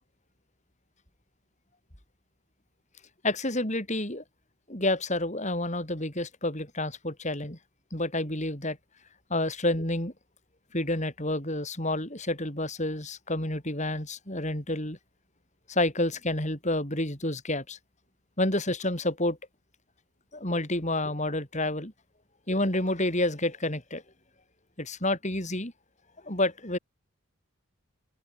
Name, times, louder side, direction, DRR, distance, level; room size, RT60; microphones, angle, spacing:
voice 1, 3.2-4.2 4.7-7.6 7.9-8.8 9.3-10.1 10.7-15.0 15.7-17.8 18.4-19.4 20.3-21.9 22.5-24.0 24.8-25.7 26.2-26.8, left 1 dB, 35° left, 6.6 m, -29 dB
open air
head